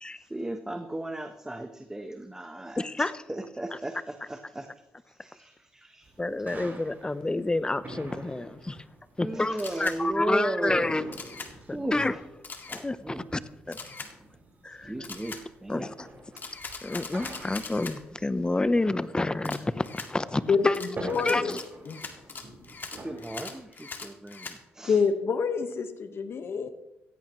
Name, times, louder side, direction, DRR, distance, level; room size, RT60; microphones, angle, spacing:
voice 1, 0.2-4.7 5.1-6.1 9.2-10.8 11.7-12.2 13.0-13.2 14.8-15.9 22.2-22.5 23.0-25.0, right 1 dB, 10° right, 6 dB, 1.1 m, -35 dB
voice 2, 2.8-3.1 6.2-8.8 9.2-11.0 11.7-12.1 12.7-13.4 13.7-13.8 14.6-14.9 15.7-16.1 16.8-21.6, left 2 dB, 20° left, 14 dB, 0.9 m, -29 dB
sound 1, 6.0-23.6, right 2 dB, 40° right, 6.5 m, -46 dB
Camera, 9.6-10.0 11.1-11.5 12.4-12.8 13.7-14.1 15.0-15.4 16.4-18.0 19.4-20.1 20.7-24.6, left 4 dB, 45° left, 2.0 m, -41 dB
voice 3, 21.1-21.5 21.9-22.0 24.8-26.7, left 5 dB, 60° left, 8 dB, 1.4 m, -27 dB
16.5 x 15.0 x 3.2 m, 0.92 s
cardioid pair, 70°, 5 cm